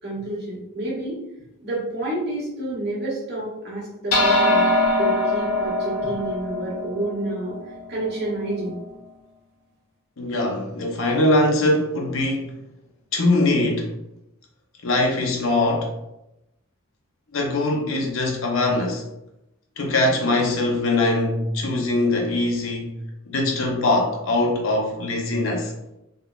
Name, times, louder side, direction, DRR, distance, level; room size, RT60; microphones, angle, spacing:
voice 1, 0.0-1.2 1.6-4.7 5.0-7.6 7.9-8.8, right 1 dB, 50° right, 1.2 m, -29 dB
sound 1, 4.1-8.8, left 1 dB, 90° left, 1.1 m, -23 dB
voice 2, 10.2-12.5 13.1-13.9 14.8-15.9 17.3-19.1 19.8-23.0 23.3-25.7, left 2 dB, 65° left, 0.6 m, -22 dB
3.6 x 2.3 x 2.3 m
head